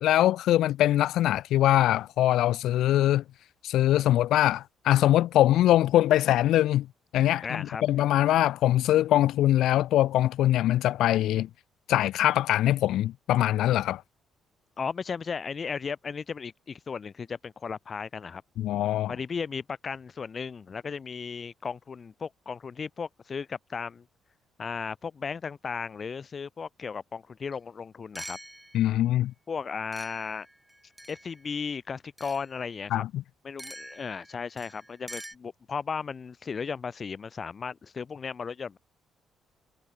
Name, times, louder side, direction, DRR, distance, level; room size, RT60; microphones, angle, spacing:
voice 1, 0.0-3.2 3.6-6.9 7.1-11.5 11.9-14.0 18.6-19.1 28.7-29.3 32.9-33.1, left 13 dB, 85° left, 0.9 m, -23 dB
voice 2, 7.4-7.8 14.8-18.4 19.1-24.1 24.6-28.4 29.5-30.5 31.1-33.0 33.4-38.8, left 5 dB, 40° left, 6.4 m, -35 dB
sound 1, 27.5-27.6 28.2-29.0 29.9-31.5 32.2-32.5 33.6-35.4, right 1 dB, 5° right, 5.7 m, -45 dB
cardioid pair, 90°, 0 cm